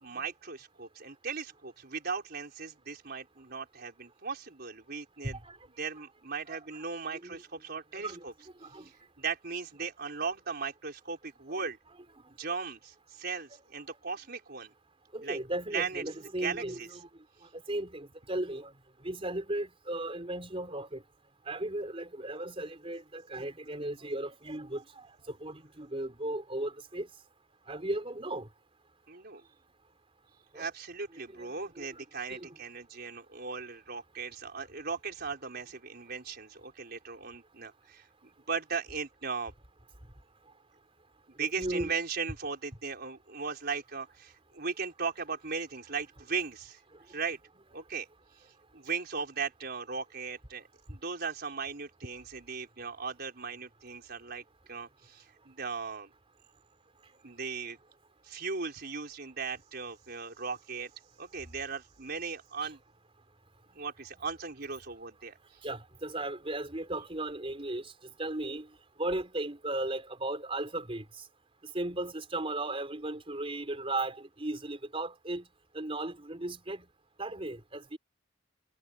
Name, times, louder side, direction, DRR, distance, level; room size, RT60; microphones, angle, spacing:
voice 1, 0.0-5.4 5.8-8.3 8.8-11.8 12.4-14.7 15.2-15.4 15.7-16.0 16.4-16.9 29.1-29.4 30.5-38.1 38.5-39.5 41.4-46.8 47.1-47.4 47.7-48.1 48.7-54.4 54.7-56.1 57.2-57.8 58.2-60.9 61.2-62.8 63.8-65.4, right 5 dB, 55° right, 4.5 m, -37 dB
voice 2, 5.2-5.6 6.5-6.8 7.1-7.4 7.9-8.2 8.6-8.9 11.5-11.6 15.1-17.1 17.5-18.7 19.0-21.0 21.5-27.1 27.7-28.5 30.5-30.7 31.3-32.0 32.3-32.6 41.6-41.9 62.6-62.7 65.6-67.9 68.2-68.7 69.0-71.2 71.7-75.5 75.7-76.8 77.2-78.0, right 1 dB, 30° right, 4.5 m, -36 dB
head